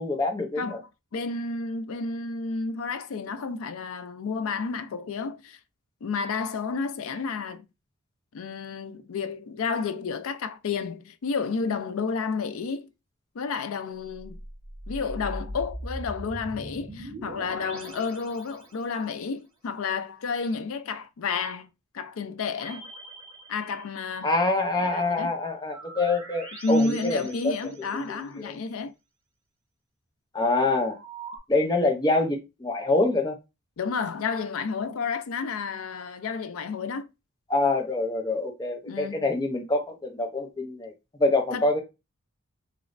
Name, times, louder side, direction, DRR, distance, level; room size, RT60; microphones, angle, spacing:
voice 1, 0.0-0.8 24.2-27.5 27.9-28.0 28.4-28.6 30.3-31.0 31.5-33.4 37.5-40.9 41.2-41.8, left 2 dB, 20° left, 0.5 m, -25 dB
voice 2, 0.6-5.6 6.0-7.7 8.3-12.9 13.3-14.4 14.9-22.9 23.5-24.3 24.8-25.3 26.6-28.9 33.8-37.1 38.9-39.3 41.5-41.6, left 4 dB, 70° left, 0.4 m, -31 dB
sound 1, 14.0-19.1 22.4-24.2 25.6-28.2 30.9-31.4, right 1 dB, 25° right, 1.0 m, -41 dB
3.0 x 3.0 x 2.5 m
head